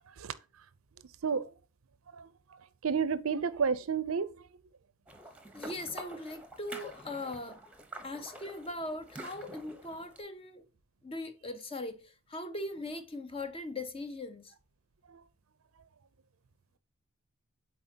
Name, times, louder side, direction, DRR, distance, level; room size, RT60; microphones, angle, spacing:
voice 1, 1.2-1.5 2.1-4.5 15.1-15.2, right 6 dB, 80° right, 0.5 m, -32 dB
sound 1, 5.1-10.2, right 1 dB, 5° right, 0.9 m, -48 dB
voice 2, 5.5-7.6 8.0-10.6 11.0-14.5, left 2 dB, 25° left, 0.7 m, -40 dB
7.8 x 4.4 x 2.8 m
head